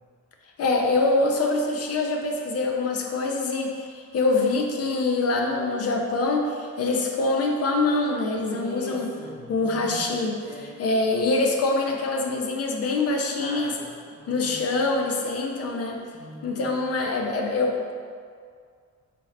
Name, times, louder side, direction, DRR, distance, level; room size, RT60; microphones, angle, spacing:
voice 1, 0.6-9.1 9.5-10.4 10.8-13.7 14.3-16.0 16.4-17.9, left 3 dB, 55° left, 1 dB, 0.5 m, -24 dB
voice 2, 8.5-10.1 10.4-10.8 13.4-14.6 16.1-16.6, equal, 30° left, -7 dB, 1.2 m, -41 dB
4.2 x 3.7 x 3.2 m, 2.1 s
wide cardioid pair, 165°, 30 cm